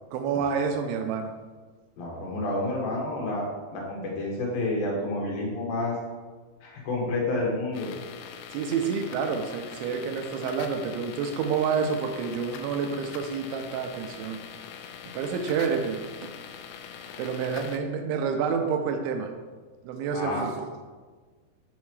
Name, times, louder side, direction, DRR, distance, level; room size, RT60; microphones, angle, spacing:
voice 1, 0.1-1.3 8.5-14.4 15.1-16.3 17.2-19.3 19.8-20.7, right 6 dB, 85° right, 5 dB, 2.9 m, -28 dB
voice 2, 2.0-3.5 3.7-5.9 6.6-7.9 20.1-20.5, left 2 dB, 60° left, -3 dB, 3.1 m, -29 dB
sound 1, 7.7-17.8, left 8 dB, 85° left, 2.5 m, -43 dB
7.3 x 5.8 x 4.7 m, 1.4 s
omnidirectional pair, 5.2 m